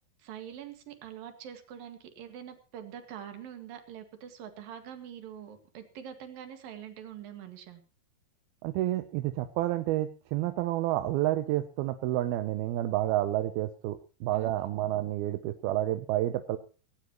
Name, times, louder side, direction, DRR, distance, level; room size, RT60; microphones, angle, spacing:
voice 1, 0.2-7.8 14.3-14.5 14.8-14.9, right 9 dB, 70° right, 7 dB, 3.6 m, -44 dB
voice 2, 8.6-16.6, right 14 dB, 85° right, 9 dB, 2.7 m, -29 dB
18.0 x 17.0 x 3.0 m, 0.36 s
omnidirectional pair, 4.3 m